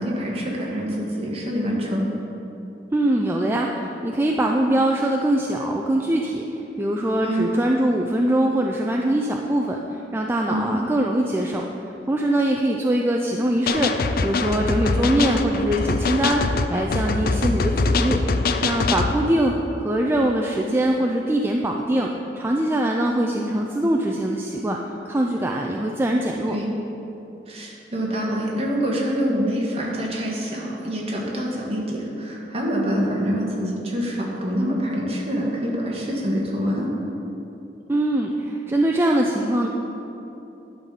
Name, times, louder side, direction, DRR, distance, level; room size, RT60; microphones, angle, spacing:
voice 1, 0.0-2.1 7.2-7.5 10.5-11.0 15.2-15.5 26.5-26.7 27.5-36.9, equal, 35° right, -3 dB, 1.6 m, -26 dB
voice 2, 2.9-11.7 12.1-13.9 14.2-18.2 18.6-19.5 19.8-22.1 22.4-24.8 25.1-26.6 37.9-39.7, right 1 dB, 15° right, 0 dB, 0.4 m, -22 dB
sound 1, 13.7-19.1, left 3 dB, 55° left, 0.5 m, -23 dB
11.0 x 4.0 x 6.9 m, 3.0 s
head